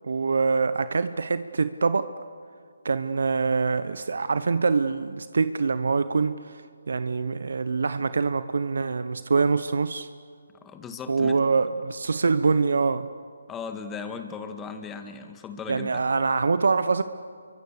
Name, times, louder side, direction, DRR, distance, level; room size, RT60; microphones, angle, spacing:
voice 1, 0.0-2.1 2.8-10.1 11.1-13.1 15.7-17.0, right 4 dB, 70° right, 12 dB, 1.0 m, -24 dB
voice 2, 10.5-11.4 13.5-16.0, left 5 dB, 10° left, 6 dB, 1.8 m, -37 dB
28.5 x 24.0 x 6.8 m, 2.3 s
figure-of-eight pair, 155°, 0 cm